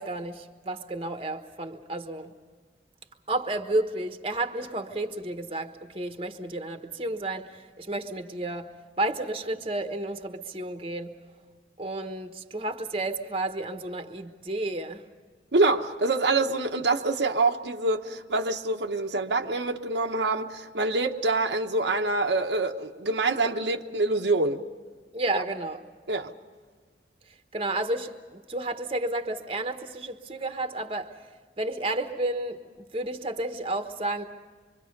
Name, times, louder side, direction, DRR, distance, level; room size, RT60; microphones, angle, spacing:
voice 1, 0.0-2.3 3.3-8.7 9.0-11.1 11.8-15.0 25.1-25.8 27.5-31.1 31.6-34.2, right 2 dB, 30° right, 1.2 m, -31 dB
voice 2, 15.5-24.6 25.3-25.4 26.1-26.3, right 3 dB, 85° right, 1.2 m, -26 dB
25.5 x 24.5 x 5.3 m
head